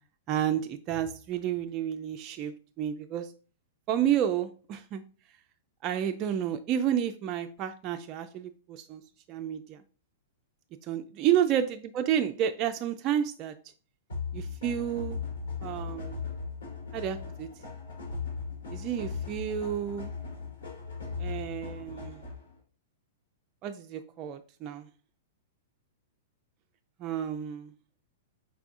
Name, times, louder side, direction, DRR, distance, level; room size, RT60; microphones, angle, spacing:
voice 1, 0.3-3.3 3.9-5.0 5.8-9.0 9.3-9.8 10.9-13.5 14.3-15.2 15.6-16.2 16.9-17.5 18.7-20.1 21.2-22.2 23.6-24.9 27.0-27.7, right 10 dB, 35° right, 6 dB, 0.4 m, -30 dB
sound 1, 14.1-22.5, left 5 dB, 80° left, 2.2 m, -38 dB
4.7 x 3.4 x 2.5 m, 0.37 s
hypercardioid pair, 110°, 0 cm